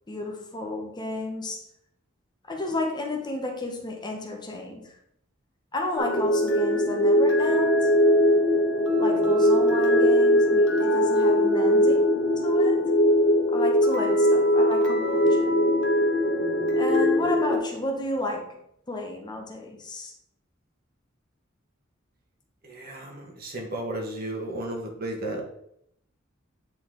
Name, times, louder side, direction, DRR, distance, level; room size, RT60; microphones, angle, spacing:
voice 1, 0.1-1.7 2.5-4.9 5.7-8.0 9.0-12.9 13.5-15.6 16.8-18.6 18.9-20.1, left 2 dB, 20° left, 1 dB, 1.0 m, -32 dB
sound 1, 6.0-17.6, left 1 dB, 65° left, 1.3 m, -21 dB
voice 2, 22.6-25.4, right 1 dB, 50° right, 0 dB, 1.5 m, -34 dB
8.8 x 4.2 x 3.8 m, 0.73 s
head